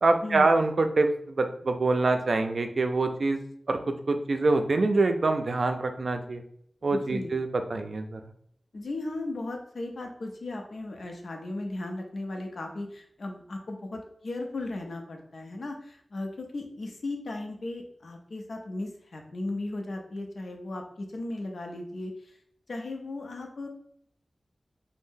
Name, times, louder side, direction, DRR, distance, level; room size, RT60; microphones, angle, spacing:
voice 1, 0.0-3.4 3.7-3.8 4.1-6.4 6.8-8.2, right 3 dB, 70° right, 6 dB, 0.3 m, -25 dB
voice 2, 6.9-7.3 8.7-22.4 22.7-23.7, left 2 dB, 80° left, 2 dB, 0.5 m, -36 dB
2.6 x 2.0 x 3.6 m, 0.67 s
wide cardioid pair, 70°, 0 cm